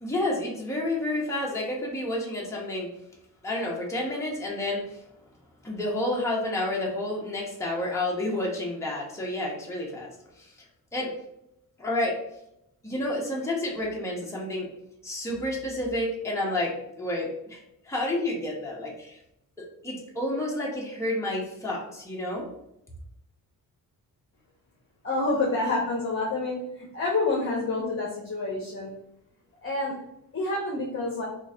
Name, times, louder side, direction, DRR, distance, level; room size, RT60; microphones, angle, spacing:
voice 1, 0.0-2.9 3.4-5.0 5.6-10.1 10.4-10.5 10.9-11.1 11.8-12.2 12.8-14.7 15.0-19.2 19.8-22.5, left 1 dB, 10° left, -3 dB, 0.8 m, -30 dB
voice 2, 25.0-28.9 29.6-29.9 30.3-31.3, left 2 dB, 35° left, -2 dB, 0.9 m, -28 dB
3.0 x 2.5 x 4.2 m, 0.81 s
wide cardioid pair, 130°, 37 cm